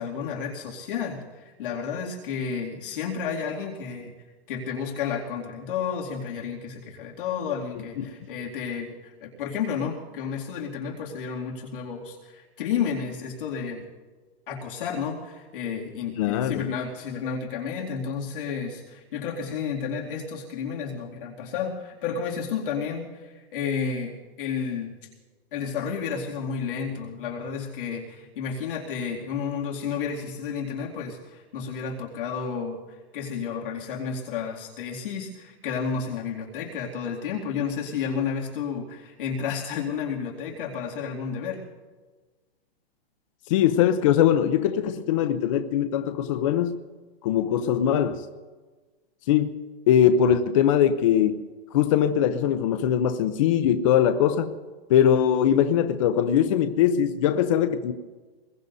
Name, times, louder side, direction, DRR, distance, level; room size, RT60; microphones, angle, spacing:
voice 1, 0.0-4.1 4.5-13.8 14.5-24.9 25.5-32.8 33.1-41.6, left 6 dB, 55° left, 2.5 m, -31 dB
voice 2, 16.2-16.7 43.5-46.8 47.2-48.3 49.3-49.6 49.9-51.4 51.7-54.5 54.9-57.9, left 9 dB, 35° left, 0.6 m, -21 dB
25.5 x 21.0 x 2.7 m
hypercardioid pair, 165°, 31 cm